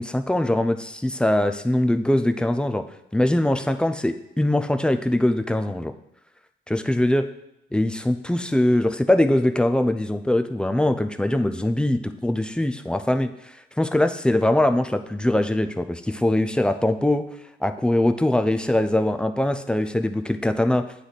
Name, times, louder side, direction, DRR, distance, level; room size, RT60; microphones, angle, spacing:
voice 1, 0.0-2.9 3.1-5.9 6.7-7.3 7.7-13.3 13.8-17.3 17.6-20.9, left 1 dB, 5° left, 8 dB, 0.4 m, -22 dB
8.5 x 3.2 x 4.0 m, 0.83 s
cardioid pair, 90°, 20 cm